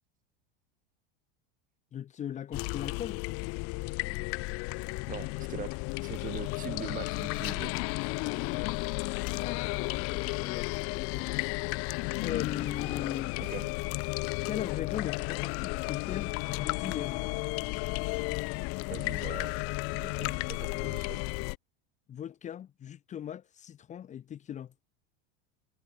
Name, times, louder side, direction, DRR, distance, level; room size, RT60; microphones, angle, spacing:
voice 1, 1.9-3.2 8.2-8.9 9.4-11.8 12.2-13.4 14.4-17.2 22.1-24.7, left 10 dB, 25° left, 1.7 m, -39 dB
sound 1, 2.5-21.6, left 29 dB, 50° left, 2.7 m, -33 dB
voice 2, 5.1-5.7 6.0-7.7 13.4-13.7 18.9-21.2, right 10 dB, 30° right, 5.1 m, -42 dB
supercardioid pair, 145°, 29 cm